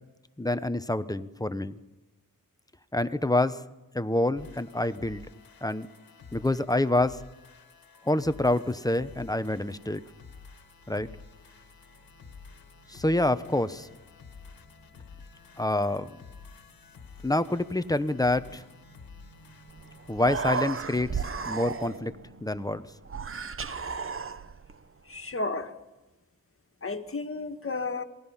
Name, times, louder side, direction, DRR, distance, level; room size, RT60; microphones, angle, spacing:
voice 1, 0.4-1.8 2.9-3.6 3.9-5.2 5.6-5.9 6.3-7.2 8.0-10.0 10.9-11.1 12.9-13.9 15.6-16.1 17.2-18.6 20.1-22.1 22.4-22.8, left 1 dB, 10° left, 12 dB, 1.0 m, -27 dB
sound 1, 4.4-22.0, left 5 dB, 90° left, 1.9 m, -50 dB
sound 2, 11.5-22.7, right 2 dB, 60° right, 2.9 m, -59 dB
Human voice, 19.7-19.8 20.1-22.2 23.1-24.7, right 5 dB, 40° right, 0.9 m, -33 dB
voice 2, 25.1-25.8 26.8-28.0, left 3 dB, 40° left, 7 dB, 1.9 m, -32 dB
27.0 x 19.5 x 5.7 m, 1.1 s
cardioid pair, 75°, 34 cm